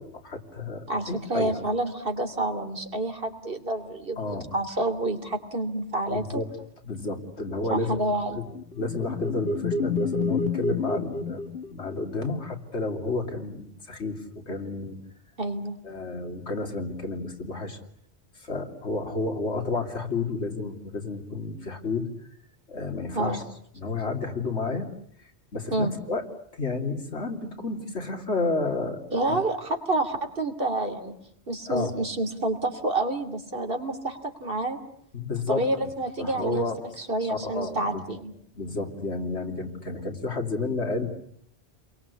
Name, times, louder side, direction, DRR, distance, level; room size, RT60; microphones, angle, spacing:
voice 1, 0.0-1.5 4.2-4.5 6.1-6.5 6.8-8.0 8.3-8.5 8.7-11.4 11.7-15.0 15.8-17.8 18.4-22.1 22.7-23.4 23.7-24.9 25.5-26.2 26.5-29.0 29.3-29.4 31.7-32.0 35.1-35.7 36.2-36.8 37.2-38.0 38.5-41.1, left 3 dB, 90° left, 4 dB, 3.3 m, -31 dB
voice 2, 0.9-4.2 4.5-6.4 7.7-8.4 15.4-15.7 23.1-23.4 25.7-25.9 29.1-31.1 31.5-34.8 35.5-36.6 37.0-38.3, right 2 dB, 55° right, 6 dB, 3.3 m, -28 dB
sound 1, 8.3-12.3, left 3 dB, 65° left, 2.0 m, -29 dB
30.0 x 23.0 x 8.4 m, 0.68 s
omnidirectional pair, 1.1 m